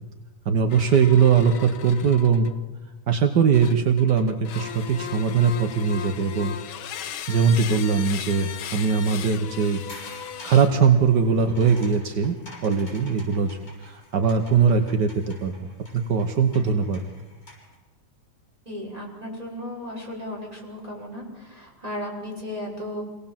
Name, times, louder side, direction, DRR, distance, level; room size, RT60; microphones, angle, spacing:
voice 1, 0.4-2.5 3.1-6.5 7.3-12.4 12.6-15.5 15.9-17.0, right 6 dB, 60° right, 6 dB, 1.1 m, -21 dB
sound 1, 0.7-2.7 3.5-11.0 11.7-12.1, left 9 dB, 80° left, 1.1 m, -37 dB
sound 2, 9.6-17.8, left 2 dB, 25° left, 7.3 m, -48 dB
voice 2, 18.7-23.0, left 1 dB, 10° right, -3 dB, 5.6 m, -35 dB
26.5 x 18.5 x 7.4 m, 1.1 s
omnidirectional pair, 3.4 m